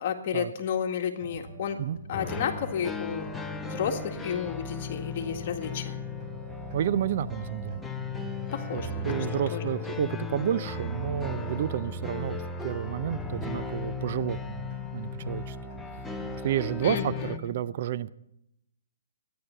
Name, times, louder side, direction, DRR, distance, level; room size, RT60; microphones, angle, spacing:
voice 1, 0.0-1.8 2.1-3.3 3.6-6.0 8.5-9.8 16.8-17.5, left 7 dB, 45° left, 4 dB, 1.8 m, -32 dB
sound 1, 1.2-17.2, equal, 25° right, 4.1 m, -45 dB
sound 2, 2.1-17.4, left 4 dB, 5° left, 0.8 m, -36 dB
voice 2, 6.7-7.8 8.7-15.6 16.4-18.1, right 10 dB, 50° right, 16 dB, 0.5 m, -30 dB
13.5 x 10.5 x 6.9 m, 0.82 s
hypercardioid pair, 135°, 0 cm